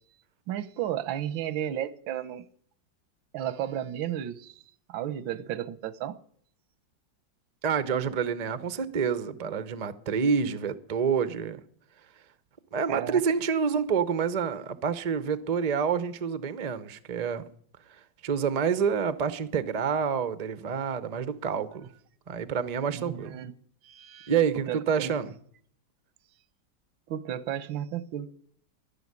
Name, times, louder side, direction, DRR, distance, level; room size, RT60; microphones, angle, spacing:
voice 1, 0.5-2.5 3.3-4.5 4.9-6.2 12.9-13.2 22.9-23.5 23.8-25.1 27.1-28.3, right 11 dB, 90° right, 1.6 m, -33 dB
voice 2, 7.6-11.6 12.7-17.4 18.2-21.9 22.3-23.4 24.3-25.3, right 6 dB, 60° right, 0.4 m, -28 dB
12.0 x 11.0 x 9.6 m
omnidirectional pair, 2.1 m